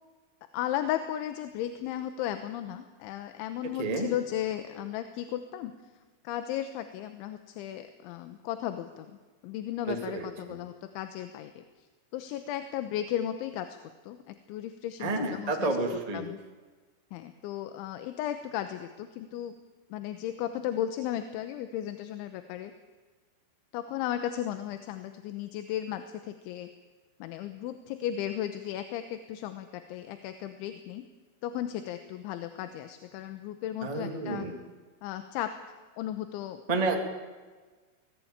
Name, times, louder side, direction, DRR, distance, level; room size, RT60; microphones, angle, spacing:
voice 1, 0.5-5.7 6.2-9.1 9.4-11.6 12.1-13.8 14.0-16.4 17.1-19.6 19.9-22.7 23.7-26.7 27.2-31.1 31.4-34.5 35.0-35.5 36.0-36.6 36.9-37.0, left 11 dB, 80° left, 9 dB, 3.3 m, -35 dB
voice 2, 9.9-10.3 15.0-16.2 33.8-34.6 36.7-36.9, right 3 dB, 35° right, 2 dB, 0.6 m, -30 dB
24.0 x 18.5 x 8.8 m, 1.4 s
omnidirectional pair, 5.6 m